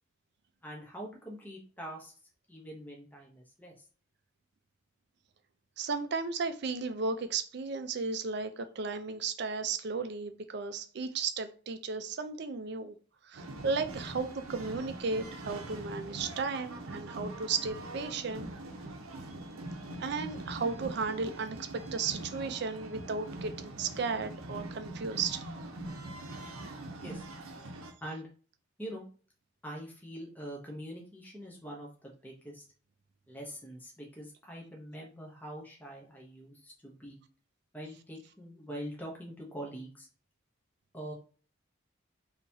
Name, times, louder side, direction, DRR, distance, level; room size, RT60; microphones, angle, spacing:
voice 1, 0.6-2.1 2.5-3.7 27.0-27.2 28.0-28.3 28.8-29.1 29.6-32.6 33.3-37.2 37.7-40.1 40.9-41.1, equal, 10° left, -2 dB, 0.8 m, -44 dB
voice 2, 5.8-13.0 13.2-18.5 20.0-25.4, right 4 dB, 50° right, 9 dB, 0.4 m, -34 dB
sound 1, 13.3-27.9, right 2 dB, 90° right, 0.7 m, -43 dB
3.8 x 2.9 x 2.7 m, 0.40 s
head